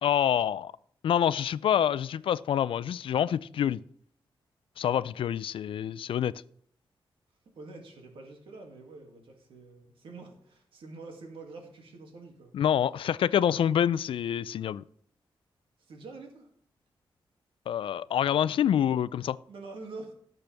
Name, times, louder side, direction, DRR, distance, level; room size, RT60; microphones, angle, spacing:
voice 1, 0.0-0.7 1.0-3.8 4.8-6.3 12.5-14.8 17.7-19.4, left 9 dB, 80° left, 0.4 m, -26 dB
voice 2, 7.5-12.5 15.8-16.5 18.7-18.8 19.5-20.1, right 3 dB, 90° right, 2.4 m, -46 dB
17.5 x 6.8 x 3.5 m
wide cardioid pair, 115°, 9 cm